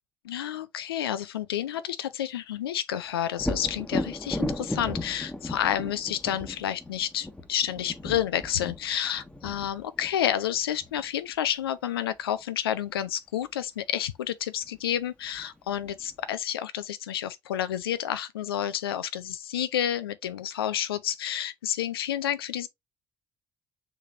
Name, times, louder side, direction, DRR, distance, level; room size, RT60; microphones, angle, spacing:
voice 1, 0.2-22.7, left 10 dB, 85° left, 0.4 m, -30 dB
Thunder, 3.4-11.0 14.7-14.8 15.3-16.1, left 1 dB, 10° left, 1.2 m, -35 dB
6.3 x 3.4 x 2.5 m
figure-of-eight pair, 45°, 12 cm